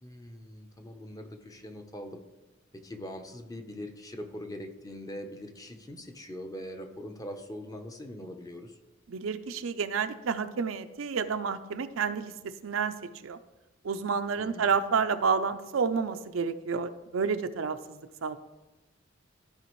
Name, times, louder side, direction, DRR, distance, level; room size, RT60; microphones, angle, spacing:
voice 1, 0.0-2.2 2.7-8.8 14.4-14.7, left 1 dB, 20° left, 5 dB, 0.7 m, -42 dB
voice 2, 9.1-12.9 13.2-13.4 13.8-18.4, right 5 dB, 85° right, 10 dB, 0.5 m, -30 dB
14.0 x 5.0 x 3.1 m, 1.1 s
head